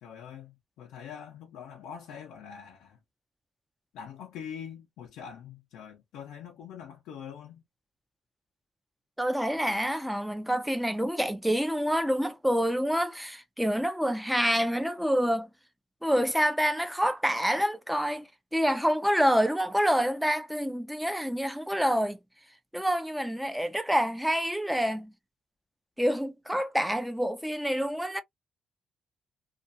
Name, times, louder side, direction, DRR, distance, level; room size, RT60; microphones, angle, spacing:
voice 1, 0.0-3.0 3.9-7.6, left 8 dB, 90° left, 0.6 m, -44 dB
voice 2, 9.2-15.5 16.0-22.2 22.7-25.1 26.0-28.2, equal, 5° right, 0.5 m, -27 dB
2.5 x 2.3 x 2.6 m
cardioid pair, 90°, 0 cm